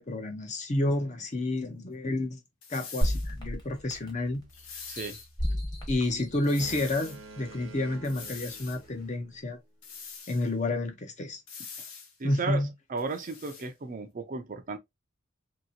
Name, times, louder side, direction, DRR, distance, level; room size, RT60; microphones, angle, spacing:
voice 1, 0.0-2.4 2.7-4.4 5.9-9.6 10.3-11.4 12.2-12.7, left 2 dB, 35° left, 0.7 m, -30 dB
sound 1, 2.6-3.3 4.5-5.3 6.4-7.2 8.0-8.8 9.8-10.5 11.5-12.1 13.0-13.7, left 5 dB, 85° left, 1.0 m, -44 dB
sound 2, 3.0-4.3 4.8-6.9 7.5-7.6, equal, 20° left, 1.0 m, -32 dB
Boat Water vehicle, 6.4-9.5, right 3 dB, 70° right, 0.8 m, -49 dB
voice 2, 12.2-12.6 12.9-14.8, right 3 dB, 40° right, 0.5 m, -34 dB
2.9 x 2.8 x 2.7 m
head